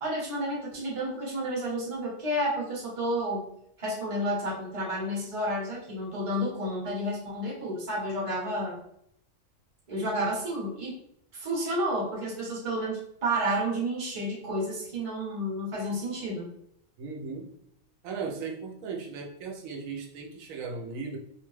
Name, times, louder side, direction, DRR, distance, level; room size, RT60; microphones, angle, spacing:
voice 1, 0.0-3.5 3.8-8.8 9.9-10.9 11.3-16.5, right 1 dB, 30° right, -4 dB, 0.8 m, -31 dB
voice 2, 17.0-17.5 18.0-21.2, right 4 dB, 80° right, 0 dB, 1.0 m, -37 dB
2.6 x 2.2 x 3.1 m, 0.74 s
omnidirectional pair, 1.4 m